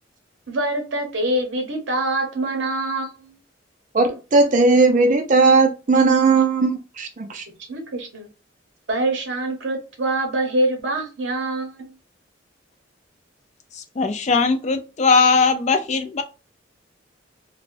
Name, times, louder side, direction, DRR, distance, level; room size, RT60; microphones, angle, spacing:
voice 1, 0.5-3.4 7.7-8.3 8.9-11.9, right 1 dB, 70° right, 0.8 m, -25 dB
voice 2, 3.9-7.5, right 3 dB, 40° right, 0.4 m, -17 dB
voice 3, 13.7-16.2, left 4 dB, 35° left, 0.3 m, -19 dB
3.3 x 2.1 x 2.5 m
head